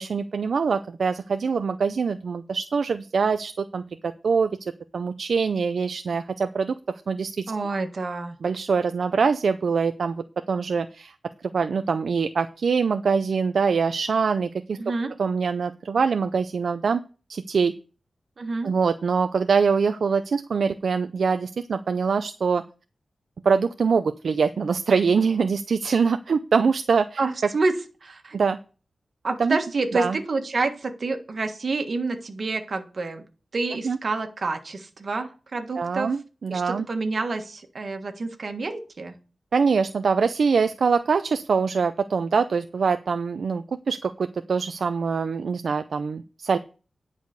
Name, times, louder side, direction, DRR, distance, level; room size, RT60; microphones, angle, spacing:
voice 1, 0.0-4.6 4.9-6.7 7.1-7.5 8.4-11.1 11.4-14.8 15.2-17.0 17.3-17.7 18.6-22.6 23.4-27.2 28.3-28.6 29.4-29.6 29.9-30.2 33.7-34.0 35.8-36.9 39.5-46.6, right 5 dB, 65° right, 9 dB, 0.5 m, -24 dB
voice 2, 7.5-8.4 14.8-15.1 18.4-18.7 27.2-27.7 28.0-28.4 29.2-33.2 33.5-36.1 36.5-39.1, right 3 dB, 45° right, 6 dB, 1.5 m, -28 dB
10.5 x 4.9 x 6.7 m, 0.35 s
wide cardioid pair, 170°, 0 cm